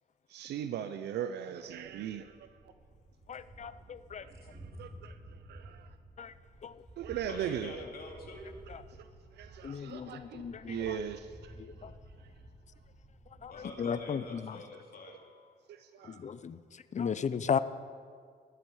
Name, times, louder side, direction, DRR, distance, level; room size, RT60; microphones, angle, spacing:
voice 1, 0.3-2.4 4.2-5.1 5.5-5.9 7.0-7.8 9.4-11.5 15.7-16.2, right 9 dB, 80° right, 0.6 m, -39 dB
Thunder, 1.6-14.3, right 1 dB, 25° right, 2.9 m, -53 dB
voice 2, 3.3-4.2 6.2-6.3 6.6-6.7 9.6-11.0 11.6-11.9 13.4-13.5 13.8-14.6 16.1-16.6 16.9-17.6, left 7 dB, 45° left, 0.6 m, -35 dB
voice 3, 7.3-8.5 13.5-15.2, left 3 dB, 60° left, 2.9 m, -46 dB
14.5 x 13.0 x 4.8 m
cardioid pair, 70°, 17 cm